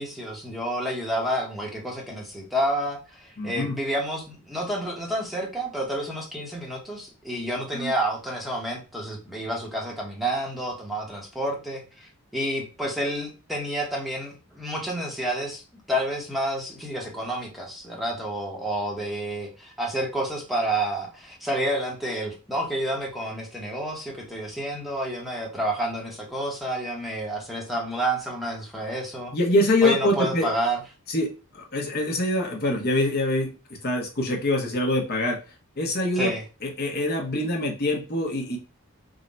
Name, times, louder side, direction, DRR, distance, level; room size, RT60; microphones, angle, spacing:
voice 1, 0.0-15.6 15.9-29.3 29.8-30.8 36.2-36.4, right 1 dB, ahead, -1 dB, 0.8 m, -29 dB
voice 2, 3.4-3.7 7.7-7.9 29.3-30.5 31.1-31.3 31.5-33.5 33.8-35.4 35.8-36.3 36.6-38.6, left 1 dB, 45° left, 1 dB, 0.8 m, -24 dB
3.7 x 2.1 x 4.0 m, 0.32 s
head